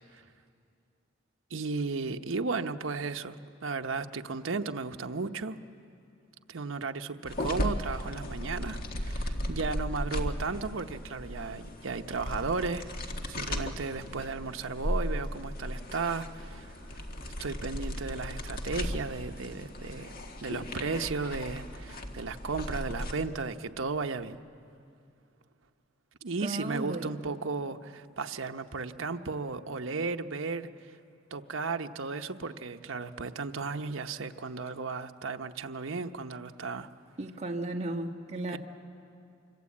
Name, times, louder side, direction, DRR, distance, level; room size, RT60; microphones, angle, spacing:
voice 1, 1.5-5.6 6.5-12.9 13.3-16.8 17.4-20.1 20.4-24.4 26.2-31.0 31.3-36.9 38.5-38.6, right 4 dB, 80° right, 7 dB, 0.9 m, -35 dB
sound 1, 7.3-23.1, equal, 50° left, 1.7 m, -36 dB
voice 2, 26.4-27.1 37.2-38.6, right 1 dB, 35° right, 1 dB, 1.6 m, -34 dB
26.5 x 24.0 x 8.5 m, 2.5 s
head